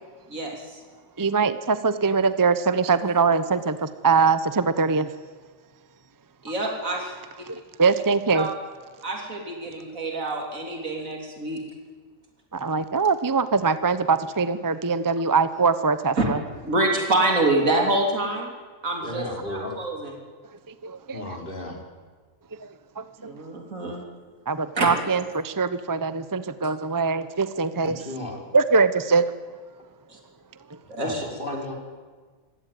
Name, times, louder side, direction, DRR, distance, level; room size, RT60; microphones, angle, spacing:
voice 1, 0.3-0.8 6.4-7.1 8.3-8.5 9.0-11.6 16.2-16.3 16.6-18.5 18.8-20.1 23.2-24.0 24.8-24.9 30.1-30.2 30.9-31.2, right 2 dB, 85° right, 1 dB, 3.6 m, -26 dB
voice 2, 1.2-5.1 7.5-8.5 12.5-16.4 20.8-21.4 22.6-22.7 23.0-23.3 24.5-28.0 28.5-29.3, right 4 dB, 20° right, 13 dB, 0.7 m, -22 dB
voice 3, 19.0-19.7 21.1-21.8 27.8-28.6 31.0-31.7, left 1 dB, 40° left, 1 dB, 4.5 m, -34 dB
25.5 x 17.0 x 9.3 m, 1.5 s
omnidirectional pair, 1.4 m